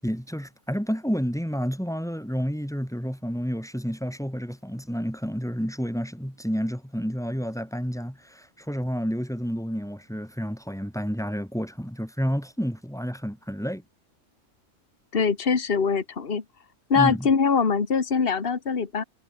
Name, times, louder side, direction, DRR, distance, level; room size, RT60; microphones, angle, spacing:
voice 1, 0.0-13.8 17.0-17.3, equal, ahead, 5.9 m, -30 dB
voice 2, 15.1-16.4 16.9-19.0, left 5 dB, 45° left, 1.9 m, -23 dB
omnidirectional pair, 1.4 m